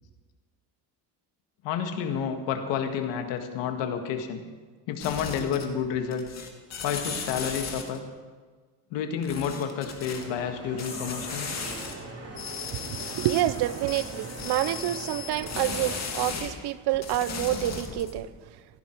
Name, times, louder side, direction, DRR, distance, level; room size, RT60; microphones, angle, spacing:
voice 1, 1.6-4.4 4.9-6.4 6.8-8.0 8.9-11.6, left 7 dB, 90° left, 6 dB, 1.9 m, -30 dB
sound 1, 5.0-5.9 6.1-8.0 9.2-10.2 10.8-11.9 12.3-16.5 16.9-18.2, left 5 dB, 40° left, 2.4 m, -36 dB
sound 2, 10.1-16.0, right 2 dB, 35° right, 3.9 m, -41 dB
voice 2, 12.7-18.3, right 13 dB, 65° right, 15 dB, 0.8 m, -28 dB
17.0 x 15.0 x 4.6 m, 1.4 s
cardioid pair, 120°, 42 cm